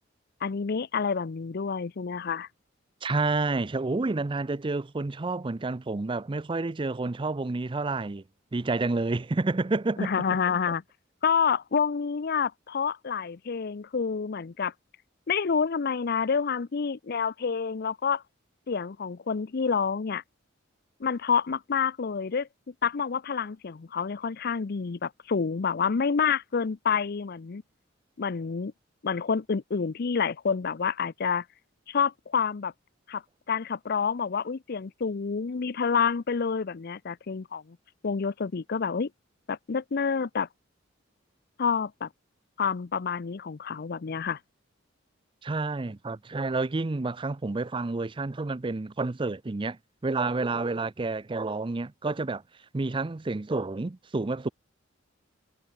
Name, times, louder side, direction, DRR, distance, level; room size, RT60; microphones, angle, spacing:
voice 1, 0.4-2.5 10.0-10.8 11.2-14.7 15.3-18.2 18.7-20.2 21.0-22.5 22.8-27.6 28.2-28.7 29.0-31.4 31.9-32.7 33.1-33.2 33.5-37.8 38.0-39.1 39.5-40.5 41.6-42.1 42.6-44.4, left 6 dB, 50° left, 0.5 m, -28 dB
voice 2, 3.0-8.2 8.5-10.1 45.4-49.8 50.0-52.4 52.7-54.5, right 3 dB, 25° right, 0.5 m, -29 dB
head